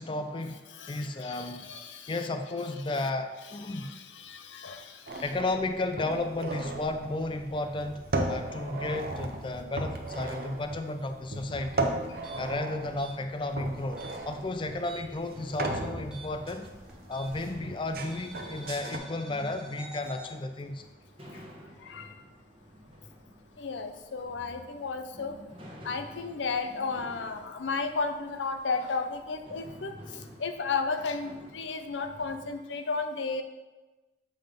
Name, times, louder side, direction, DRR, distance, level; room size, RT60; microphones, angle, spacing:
voice 1, 0.0-1.6 2.1-3.9 5.2-11.8 12.4-16.7 17.1-20.8, left 2 dB, 25° left, 7 dB, 0.4 m, -33 dB
voice 2, 0.7-2.2 3.7-5.2 21.8-22.1 23.6-25.3 25.8-33.4, left 4 dB, 75° left, 7 dB, 0.6 m, -34 dB
sound 1, 5.1-19.0, right 2 dB, 50° right, 0.7 m, -36 dB
sound 2, 12.1-15.3 15.5-17.6 18.1-20.3, right 2 dB, 5° right, 1.0 m, -49 dB
sound 3, 14.5-32.5, equal, 30° right, 1.3 m, -50 dB
7.6 x 3.7 x 5.1 m, 1.2 s
head